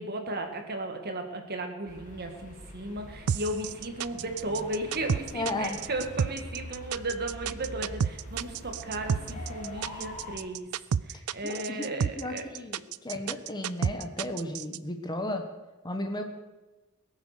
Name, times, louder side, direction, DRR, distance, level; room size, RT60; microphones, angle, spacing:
voice 1, 0.0-10.7 11.0-12.4, right 1 dB, 45° right, 5 dB, 1.9 m, -35 dB
sound 1, 1.9-10.4, left 1 dB, 35° left, 2.4 m, -44 dB
sound 2, 3.3-14.8, right 7 dB, 70° right, 0.4 m, -30 dB
voice 2, 5.3-5.8 11.4-15.5 15.8-16.3, left 1 dB, 20° left, 5 dB, 1.2 m, -34 dB
21.0 x 7.3 x 6.7 m, 1.1 s
head